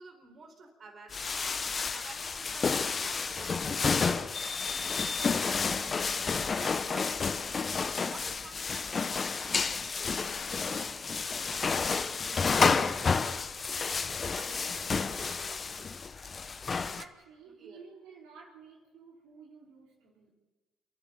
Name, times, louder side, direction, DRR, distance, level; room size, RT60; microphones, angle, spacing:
voice 1, 0.0-4.1 6.6-7.6 8.0-13.5 14.3-15.9 17.6-17.8, right 4 dB, 50° right, 4 dB, 4.2 m, -53 dB
sound 1, 1.1-17.0, left 5 dB, 40° left, 1.1 m, -30 dB
voice 2, 17.0-20.3, right 5 dB, 80° right, -3 dB, 4.1 m, -52 dB
28.5 x 11.5 x 8.8 m, 1.2 s
hypercardioid pair, 60°, 0 cm